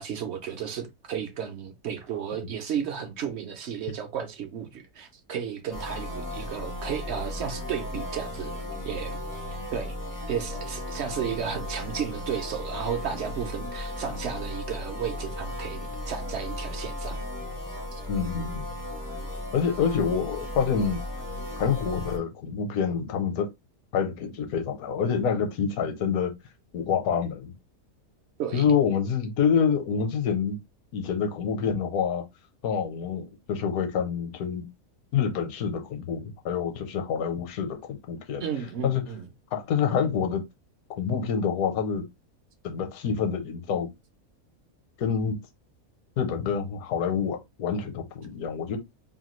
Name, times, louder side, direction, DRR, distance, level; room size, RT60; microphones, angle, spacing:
voice 1, 0.0-8.5 8.9-9.2 9.7-9.9 10.3-17.2 17.9-18.0 28.4-28.6 38.4-39.3, right 8 dB, 65° right, 0.7 m, -33 dB
sound 1, 5.7-22.2, left 1 dB, 25° left, 0.4 m, -35 dB
voice 2, 18.1-18.7 19.5-21.0 21.6-23.5 23.9-26.3 26.7-27.5 28.5-30.6 30.9-32.2 32.6-34.7 35.1-38.4 38.8-39.0 39.5-40.4 41.0-42.0 42.6-43.9 45.0-45.4 46.2-48.8, left 7 dB, 75° left, 1.1 m, -27 dB
2.8 x 2.2 x 3.0 m
omnidirectional pair, 1.6 m